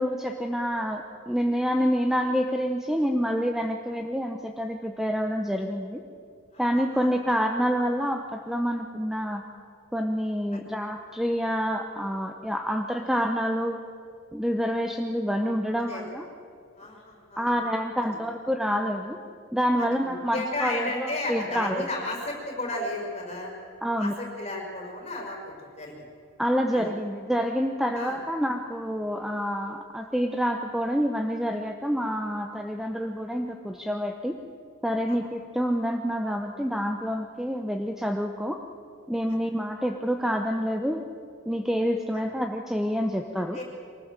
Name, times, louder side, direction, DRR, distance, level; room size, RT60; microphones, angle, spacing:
voice 1, 0.0-6.0 6.6-9.4 9.9-13.8 14.3-16.3 17.4-19.2 19.5-21.9 23.8-24.1 26.4-34.4 34.8-38.6 39.1-41.0 41.5-43.6, equal, ahead, 4 dB, 0.8 m, -27 dB
voice 2, 6.5-7.2 10.5-10.6 15.9-16.0 16.8-17.6 19.8-23.5 24.0-25.9 26.7-26.9 27.9-28.2 35.1-35.2 42.1-42.3 43.5-43.6, left 2 dB, 30° left, -1 dB, 5.3 m, -34 dB
23.5 x 19.0 x 7.5 m, 2.4 s
head